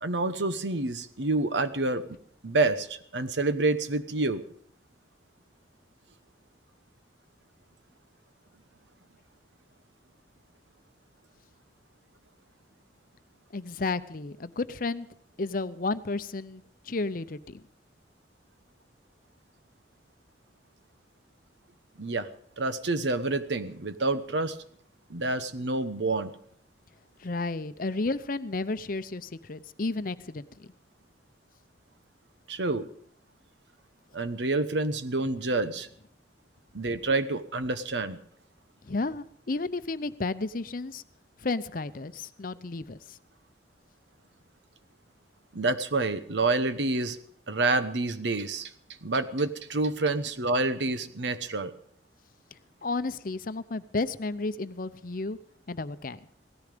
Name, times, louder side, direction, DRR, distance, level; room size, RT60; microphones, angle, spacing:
voice 1, 0.0-2.0 2.4-4.4 22.0-22.3 22.6-24.6 25.1-26.3 32.5-32.9 34.1-35.9 36.7-38.2 45.5-47.2 47.5-48.7 49.0-51.7, right 2 dB, 85° right, 11 dB, 1.0 m, -28 dB
voice 2, 13.5-15.1 15.4-17.6 27.2-30.7 38.8-41.0 41.4-43.2 52.8-55.4 55.7-56.2, left 3 dB, 50° left, 13 dB, 0.7 m, -32 dB
17.0 x 14.0 x 5.2 m, 0.62 s
head